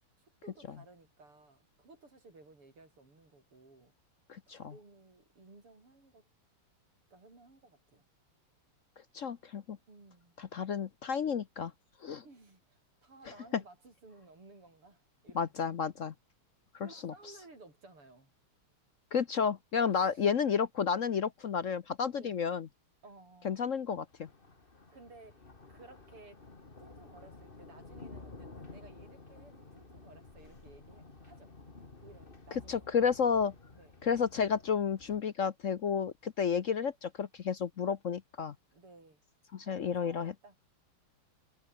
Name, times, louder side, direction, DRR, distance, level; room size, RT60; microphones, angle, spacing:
voice 1, 0.2-3.9 4.5-6.2 7.1-8.0 9.9-10.4 12.2-15.5 16.8-18.3 19.8-20.3 22.2-22.4 23.0-23.7 24.9-26.5 26.8-31.5 32.0-33.0 33.7-33.9 38.7-39.2 39.6-40.6, right 3 dB, 80° right, 7.6 m, -57 dB
voice 2, 4.3-4.7 9.1-9.8 10.4-11.7 12.0-12.2 15.3-16.1 16.7-17.1 19.1-22.7 23.4-24.3 32.7-33.5 34.0-38.5 39.5-40.5, left 6 dB, 60° left, 0.8 m, -31 dB
Thunder, 24.0-35.2, left 3 dB, 25° left, 2.4 m, -53 dB
omnidirectional pair, 2.4 m